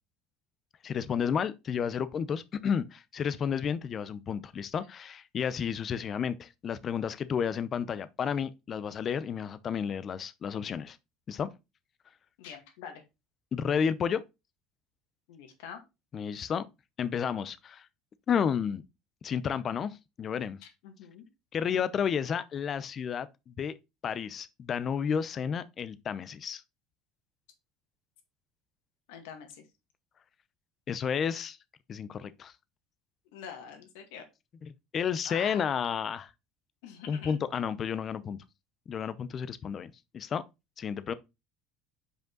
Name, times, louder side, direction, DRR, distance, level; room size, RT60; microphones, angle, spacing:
voice 1, 0.8-11.0 11.3-11.5 13.5-14.2 16.1-16.7 17.0-17.9 18.3-18.8 19.2-20.6 21.5-23.8 24.0-26.6 30.9-31.6 31.9-32.5 34.9-36.3 37.1-38.4 38.9-40.4 40.8-41.1, left 7 dB, 35° left, 0.6 m, -31 dB
voice 2, 12.4-13.0 15.3-15.8 16.3-16.4 20.6-21.3 29.1-29.6 33.3-34.2 35.3-35.7 36.8-37.4, left 7 dB, 80° left, 1.9 m, -45 dB
5.1 x 5.0 x 3.9 m
supercardioid pair, 125°, 0 cm